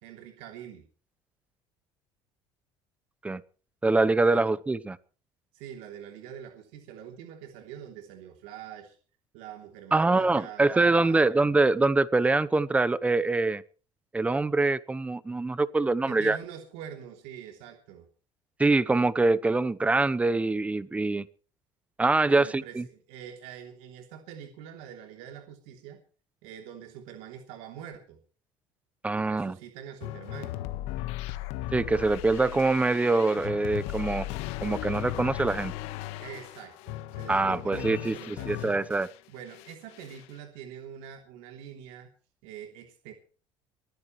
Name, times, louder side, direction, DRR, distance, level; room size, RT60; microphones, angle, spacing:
voice 1, 0.0-0.9 4.2-4.5 5.5-9.0 9.3-11.3 16.1-18.1 22.2-26.0 26.4-28.2 29.1-30.6 36.2-38.8 39.3-42.1 42.4-43.1, right 9 dB, 85° right, 4 dB, 3.2 m, -44 dB
voice 2, 3.8-5.0 9.9-13.6 14.1-16.4 18.6-21.3 22.0-22.8 29.0-29.6 31.7-34.3 34.6-35.7 37.3-39.1, right 3 dB, 15° right, 16 dB, 0.9 m, -24 dB
sound 1, 30.0-39.2 39.5-40.3, left 14 dB, 85° left, 1.4 m, -37 dB
23.0 x 15.0 x 3.2 m, 0.39 s
cardioid pair, 125°, 10 cm